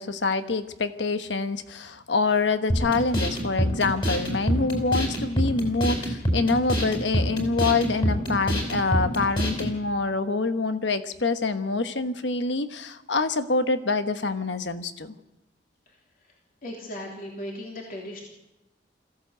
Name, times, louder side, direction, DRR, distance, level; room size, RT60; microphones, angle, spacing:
voice 1, 0.0-15.1, left 3 dB, 75° left, 10 dB, 1.2 m, -26 dB
sound 1, 2.7-9.7, equal, 30° left, 5.1 m, -26 dB
voice 2, 16.6-18.2, left 1 dB, 50° left, -1 dB, 3.2 m, -37 dB
21.5 x 15.0 x 8.1 m, 0.98 s
head